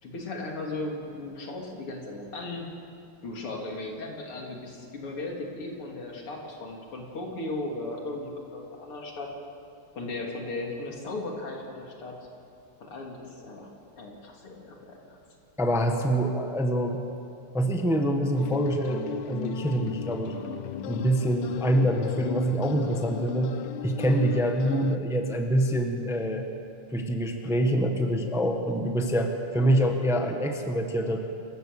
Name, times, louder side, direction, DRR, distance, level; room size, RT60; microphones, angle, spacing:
voice 1, 0.0-2.7 3.2-9.3 9.9-12.2 12.8-13.7 14.0-15.2, left 2 dB, 85° left, 0 dB, 3.7 m, -36 dB
voice 2, 15.6-17.0 17.5-20.4 20.9-23.6 23.8-26.5 26.9-31.2, right 1 dB, ahead, 4 dB, 1.1 m, -25 dB
sound 1, 18.4-25.0, left 9 dB, 70° left, 1.2 m, -36 dB
27.0 x 15.0 x 6.7 m, 2.6 s
omnidirectional pair, 2.4 m